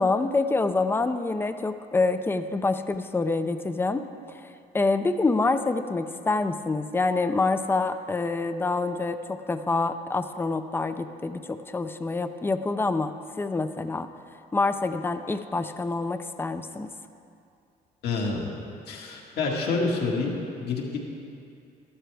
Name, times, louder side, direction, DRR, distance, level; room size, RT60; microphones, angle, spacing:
voice 1, 0.0-4.0 4.3-4.4 4.7-13.1 13.4-14.1 14.5-16.9, left 3 dB, 15° left, 9 dB, 0.5 m, -26 dB
voice 2, 18.0-18.5 18.9-21.1, left 3 dB, 70° left, -1 dB, 2.0 m, -28 dB
13.5 x 12.5 x 3.4 m, 2.5 s
cardioid pair, 110°, 17 cm